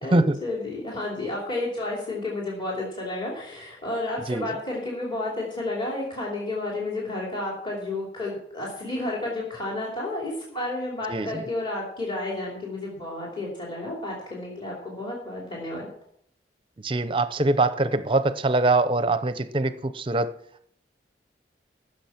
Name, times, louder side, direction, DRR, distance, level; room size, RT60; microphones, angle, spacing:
voice 1, 0.0-15.9, left 2 dB, 25° left, 2.9 m, -31 dB
voice 2, 11.1-11.4 16.8-20.3, right 2 dB, 30° right, 0.6 m, -23 dB
15.0 x 6.9 x 5.8 m
head